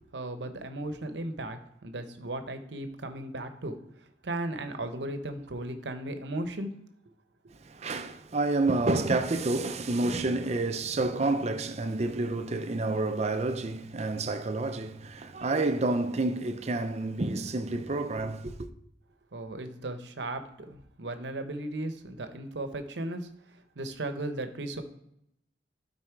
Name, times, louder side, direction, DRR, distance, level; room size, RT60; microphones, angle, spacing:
voice 1, 0.1-6.7 19.3-23.3 23.8-24.8, right 1 dB, 80° right, 0.9 m, -36 dB
voice 2, 7.6-18.7, right 2 dB, 40° right, 0.5 m, -29 dB
12.0 x 4.2 x 4.6 m
head